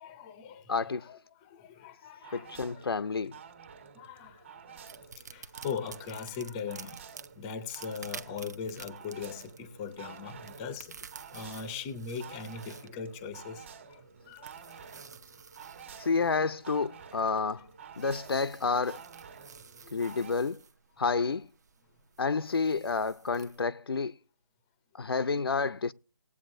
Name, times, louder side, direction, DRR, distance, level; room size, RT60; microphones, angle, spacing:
voice 1, 0.0-0.7 1.0-2.8 3.9-4.9 5.2-7.0 7.4-11.0 11.3-14.9 19.8-20.2, left 6 dB, 10° left, 0.6 m, -40 dB
voice 2, 0.7-1.1 2.3-3.4 16.0-17.7 18.0-19.0 19.9-20.6 21.0-21.5 22.2-24.1 24.9-25.9, left 4 dB, 85° left, 0.6 m, -29 dB
sound 1, 2.2-20.3, right 6 dB, 30° right, 1.5 m, -50 dB
sound 2, 4.7-23.6, right 5 dB, 45° right, 0.8 m, -52 dB
19.0 x 8.4 x 2.6 m
hypercardioid pair, 165°, 12 cm